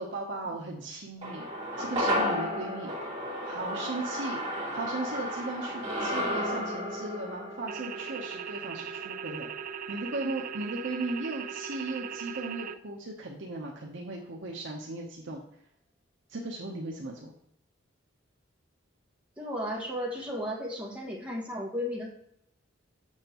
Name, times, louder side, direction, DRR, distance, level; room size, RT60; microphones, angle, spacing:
voice 1, 0.0-1.4 1.8-2.9 3.5-4.4 4.7-9.5 9.9-15.4 16.3-17.3, right 2 dB, 65° right, -1 dB, 0.9 m, -37 dB
sound 1, 1.2-9.7 10.0-10.1, equal, 30° right, 2.7 m, -33 dB
sound 2, 7.7-12.7, right 7 dB, 45° right, 0.4 m, -39 dB
voice 2, 19.4-22.2, equal, 5° right, -3 dB, 1.6 m, -34 dB
7.3 x 6.8 x 3.0 m, 0.76 s
head